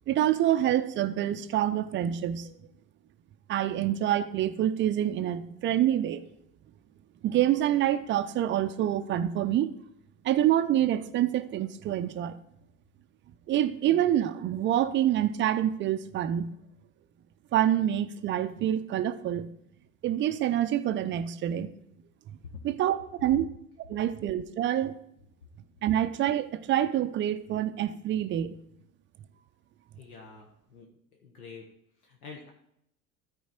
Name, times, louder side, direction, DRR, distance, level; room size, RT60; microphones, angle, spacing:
voice 1, 0.1-2.5 3.5-6.2 7.2-9.7 10.2-12.4 13.5-16.5 17.5-19.5 20.0-21.7 22.6-23.5 23.9-25.0 25.8-28.6, right 11 dB, 25° right, 0.5 m, -26 dB
voice 2, 30.0-30.9 31.2-31.6 32.0-32.5, left 5 dB, 70° left, 1.3 m, -47 dB
13.0 x 4.7 x 4.4 m
figure-of-eight pair, 75°, 45 cm